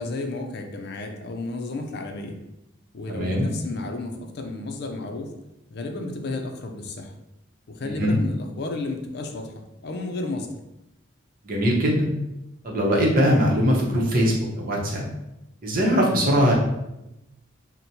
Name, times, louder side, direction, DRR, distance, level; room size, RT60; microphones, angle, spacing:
voice 1, 0.0-2.4 2.9-5.3 5.7-7.1 7.7-9.5 9.8-10.5, left 2 dB, 55° left, 4 dB, 0.5 m, -32 dB
voice 2, 3.1-3.5 7.8-8.2 11.4-12.1 12.6-15.0 15.6-16.5, equal, 45° right, -2 dB, 0.8 m, -21 dB
6.0 x 2.1 x 2.7 m, 0.92 s
head